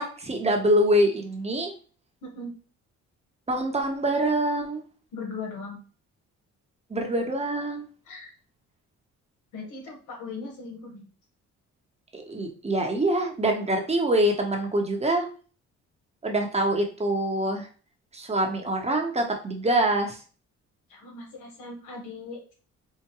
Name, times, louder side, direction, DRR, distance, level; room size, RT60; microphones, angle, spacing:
voice 1, 0.0-1.7 3.5-4.8 6.9-7.9 12.1-15.2 16.2-17.7 18.1-20.2, right 1 dB, 20° right, 2 dB, 0.9 m, -25 dB
voice 2, 2.2-2.5 5.1-5.8 8.0-8.3 9.5-11.1 20.9-22.4, left 3 dB, 90° left, 1 dB, 1.3 m, -38 dB
4.7 x 2.2 x 2.9 m, 0.38 s
cardioid pair, 90°, 30 cm